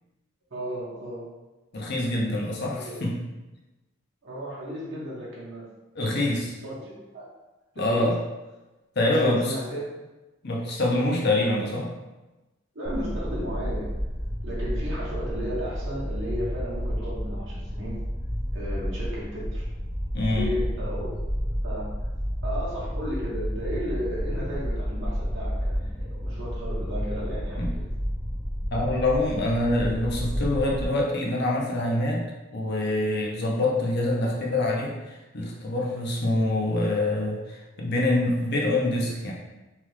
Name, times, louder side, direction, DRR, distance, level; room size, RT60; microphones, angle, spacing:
voice 1, 0.5-1.2 2.7-3.1 4.2-5.7 6.6-7.3 7.8-8.1 9.0-9.9 12.7-13.9 14.4-18.0 18.5-19.6 20.3-21.9 22.4-27.8, equal, 60° right, -7 dB, 0.8 m, -34 dB
voice 2, 1.7-3.1 6.0-6.6 7.8-8.1 9.0-9.5 10.4-11.9 20.1-20.5 27.6-27.7 28.7-32.2 32.5-39.3, left 1 dB, 55° left, -2 dB, 0.6 m, -25 dB
sound 1, 12.9-30.8, equal, 10° left, 0.4 m, -31 dB
3.0 x 2.3 x 3.2 m, 1.1 s
head